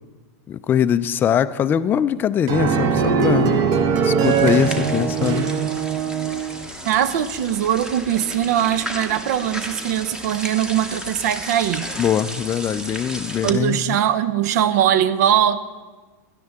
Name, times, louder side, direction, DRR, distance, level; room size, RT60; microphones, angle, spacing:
voice 1, 0.5-3.6 4.0-5.5 12.0-14.0, left 9 dB, 20° left, 12 dB, 0.4 m, -22 dB
sound 1, 2.5-6.6, right 6 dB, 45° right, 1.0 m, -20 dB
sound 2, 4.2-13.5, equal, 10° right, 0.9 m, -33 dB
voice 2, 6.9-11.8 13.4-15.6, right 10 dB, 70° right, 14 dB, 0.7 m, -21 dB
17.0 x 11.0 x 3.5 m, 1.3 s
supercardioid pair, 130°, 9 cm